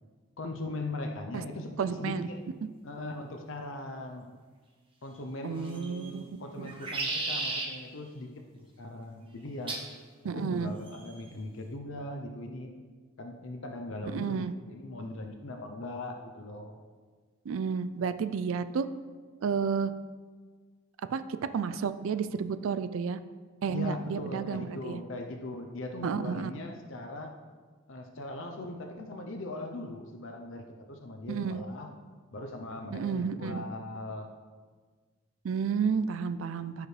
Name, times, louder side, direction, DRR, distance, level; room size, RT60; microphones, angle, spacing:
voice 1, 0.4-2.4 2.8-4.3 5.0-9.7 10.3-12.7 13.2-16.8 23.7-27.4 27.9-31.9 32.3-34.3, left 2 dB, 65° left, 3 dB, 0.7 m, -40 dB
voice 2, 1.8-2.3 5.4-6.2 6.6-6.7 10.2-10.7 14.1-14.5 17.5-18.9 19.4-19.9 21.1-21.2 21.5-23.2 23.6-25.0 26.0-26.5 31.3-31.6 32.9-33.6 35.4-36.9, right 6 dB, 75° right, 12 dB, 0.4 m, -31 dB
sound 1, 5.6-6.1 6.6-7.7 9.7-9.9 10.9-11.3, right 3 dB, 25° right, 1.0 m, -34 dB
14.5 x 4.8 x 3.3 m, 1.5 s
head